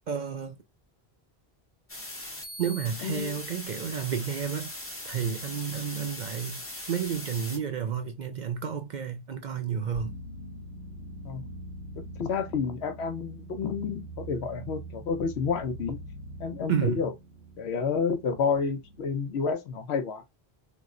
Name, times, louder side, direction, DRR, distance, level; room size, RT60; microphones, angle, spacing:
voice 1, 0.1-0.6 2.6-4.7 5.0-6.6 6.9-10.2 16.7-17.0, right 7 dB, 55° right, 0.5 m, -31 dB
sound 1, 1.9-7.6, left 1 dB, 15° left, 0.5 m, -40 dB
voice 2, 3.0-3.4 11.2-11.4 12.2-16.0 16.4-17.1 17.6-20.2, left 5 dB, 85° left, 0.9 m, -30 dB
sound 2, 9.9-19.5, right 1 dB, 30° right, 0.8 m, -43 dB
3.0 x 2.1 x 3.6 m
omnidirectional pair, 1.1 m